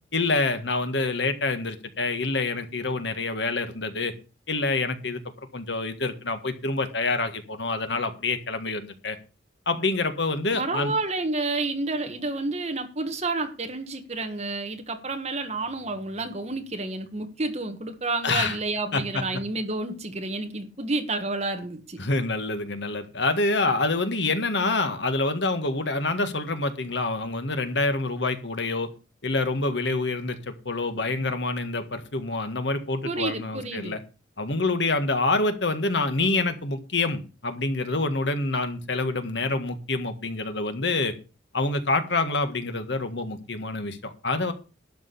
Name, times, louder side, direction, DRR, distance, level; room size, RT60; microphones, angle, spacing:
voice 1, 0.1-4.1 4.5-5.2 5.5-9.2 9.6-10.9 18.2-18.6 18.9-19.4 22.0-28.9 29.2-34.0 34.4-41.1 41.5-44.5, left 3 dB, 70° left, 1.7 m, -27 dB
voice 2, 10.5-22.0 33.0-34.0, right 2 dB, 35° right, 1.6 m, -30 dB
12.0 x 5.0 x 8.4 m
head